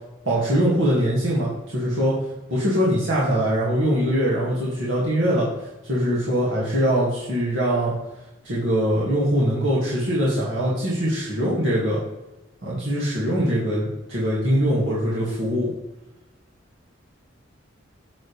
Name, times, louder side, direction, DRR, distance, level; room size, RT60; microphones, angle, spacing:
voice 1, 0.3-2.2 2.5-5.5 5.9-7.9 8.4-12.0 12.6-15.7, equal, 80° right, -7 dB, 2.1 m, -22 dB
7.6 x 7.3 x 3.3 m, 0.98 s
head